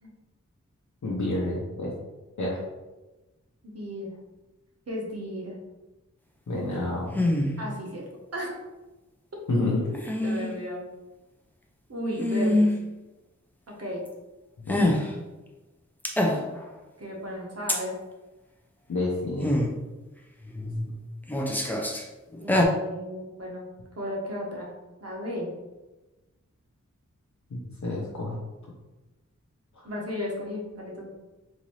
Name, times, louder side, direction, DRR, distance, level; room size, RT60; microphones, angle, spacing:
voice 1, 1.0-1.9 2.4-2.6 6.5-7.2 9.5-9.8 14.6-14.8 18.9-19.5 27.5-28.4, left 2 dB, 70° left, -5 dB, 0.7 m, -29 dB
voice 2, 3.6-4.1 4.9-5.5 7.6-8.0 8.3-8.6 9.6-10.8 11.9-12.7 13.7-14.0 17.0-17.9 22.4-23.7 24.0-24.7 25.0-25.5 29.8-31.1, left 1 dB, 55° right, -2 dB, 1.0 m, -34 dB
sound 1, 7.1-7.6 9.9-10.5 12.2-12.8 14.7-15.1 16.0-16.6 17.7-17.8 19.4-19.7 20.4-20.9 21.3-22.0 22.3-22.6, left 1 dB, 5° left, 0.5 m, -24 dB
4.0 x 2.6 x 3.1 m, 1.1 s
wide cardioid pair, 60°, 30 cm